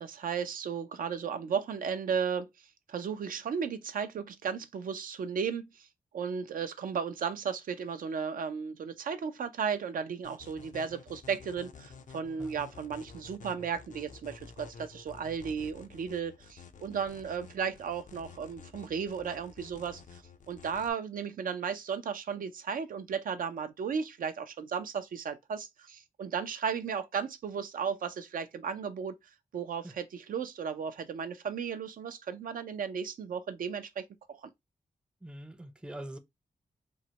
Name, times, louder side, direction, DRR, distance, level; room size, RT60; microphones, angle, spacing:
voice 1, 0.0-2.5 2.9-5.9 6.1-20.2 20.5-29.1 29.5-34.0 34.3-34.5, right 6 dB, 75° right, 0.4 m, -35 dB
sound 1, 10.2-20.9, left 5 dB, 60° left, 0.4 m, -51 dB
voice 2, 12.4-12.7 29.8-29.9 35.2-36.2, right 1 dB, 5° right, 0.4 m, -44 dB
3.0 x 2.1 x 2.8 m
cardioid pair, 65°, 15 cm